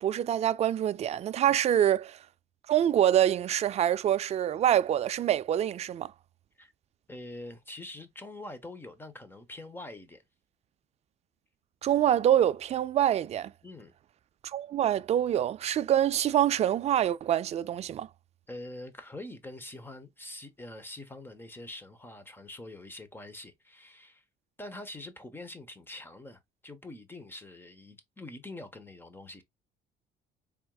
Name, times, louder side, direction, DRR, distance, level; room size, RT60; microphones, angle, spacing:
voice 1, 0.0-2.2 2.7-6.1 11.8-13.5 14.4-18.1, right 11 dB, 40° right, 0.4 m, -25 dB
voice 2, 7.1-10.2 13.6-13.9 18.5-24.2 24.6-29.4, left 2 dB, 10° left, 0.9 m, -44 dB
4.5 x 3.5 x 2.3 m
cardioid pair, 110°, 17 cm